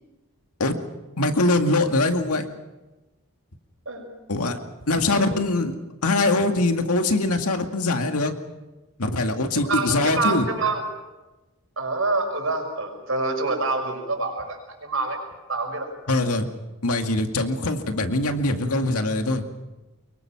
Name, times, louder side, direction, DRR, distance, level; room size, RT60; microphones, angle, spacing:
voice 1, 1.2-2.5 4.3-4.6 4.9-5.7 6.0-8.3 9.0-10.5 16.1-16.5 16.8-19.5, left 2 dB, 90° left, 5 dB, 2.2 m, -22 dB
voice 2, 9.5-10.8 11.8-15.2 15.5-15.9, right 3 dB, 70° right, 3 dB, 5.9 m, -26 dB
25.0 x 23.0 x 6.1 m, 1.1 s
head